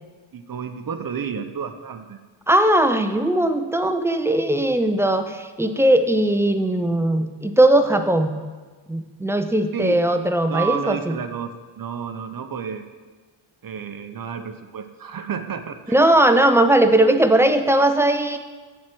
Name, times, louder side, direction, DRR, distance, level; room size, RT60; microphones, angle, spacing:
voice 1, 0.3-2.2 9.7-10.0 10.5-12.8 13.6-16.0, right 7 dB, 45° right, 8 dB, 0.7 m, -31 dB
voice 2, 2.5-8.4 8.9-11.1 15.9-18.4, right 1 dB, 5° right, 8 dB, 0.4 m, -19 dB
7.4 x 4.6 x 6.0 m, 1.3 s
cardioid pair, 70°, 50 cm